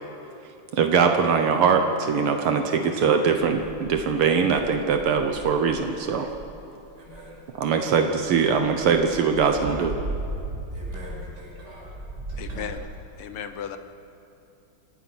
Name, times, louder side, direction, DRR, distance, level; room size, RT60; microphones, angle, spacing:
voice 1, 0.7-6.3 7.6-10.0, right 6 dB, 80° right, 5 dB, 2.0 m, -22 dB
sound 1, 3.2-6.5 7.0-7.2 7.5-11.4 11.8-12.7, right 2 dB, 30° right, 5.0 m, -37 dB
voice 2, 7.0-7.4 7.9-8.1 10.7-11.9 12.3-12.7, right 1 dB, 50° right, -4 dB, 7.0 m, -44 dB
voice 3, 12.4-12.9 13.2-13.8, left 7 dB, 80° left, 9 dB, 2.0 m, -35 dB
27.5 x 17.0 x 6.1 m, 2.7 s
omnidirectional pair, 2.4 m